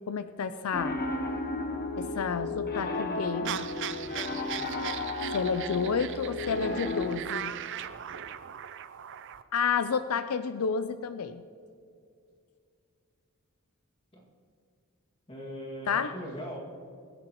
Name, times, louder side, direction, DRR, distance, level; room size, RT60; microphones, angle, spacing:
voice 1, 0.1-1.0 1.9-3.7 5.3-7.5 9.5-11.4 15.9-16.1, left 6 dB, 75° left, 11 dB, 0.5 m, -30 dB
Piano, 0.7-7.2, left 2 dB, 45° left, 1.0 m, -33 dB
sound 1, 3.4-9.4, right 10 dB, 55° right, 0.5 m, -39 dB
voice 2, 15.3-16.6, equal, 25° left, -3 dB, 2.1 m, -39 dB
25.0 x 10.5 x 3.0 m, 2.4 s
head